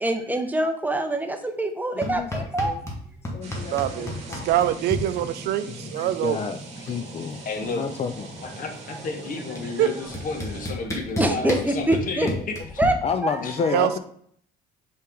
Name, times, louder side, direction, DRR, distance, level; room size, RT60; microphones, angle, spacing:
voice 1, 0.0-2.7 11.2-12.3 12.8-12.9, right 1 dB, 10° right, 6 dB, 0.8 m, -24 dB
voice 2, 2.0-2.9 3.3-4.5 5.7-8.4 9.5-9.7 11.1-11.7 12.0-14.0, left 6 dB, 40° left, 9 dB, 0.5 m, -32 dB
sound 1, 2.0-3.0 3.2-5.0 6.3-6.4 6.6-7.0 7.3-8.7 9.6-9.7 10.1-12.9, left 1 dB, 15° left, 1.5 m, -31 dB
sound 2, 3.4-10.7, right 3 dB, 40° right, 1.8 m, -41 dB
voice 3, 3.7-6.4 9.8-9.9 13.7-13.9, right 13 dB, 70° right, 12 dB, 0.5 m, -24 dB
voice 4, 7.5-7.9 8.4-12.6 13.4-13.5, left 3 dB, 55° left, 5 dB, 1.2 m, -32 dB
5.7 x 4.6 x 3.7 m, 0.62 s
cardioid pair, 110°, 17 cm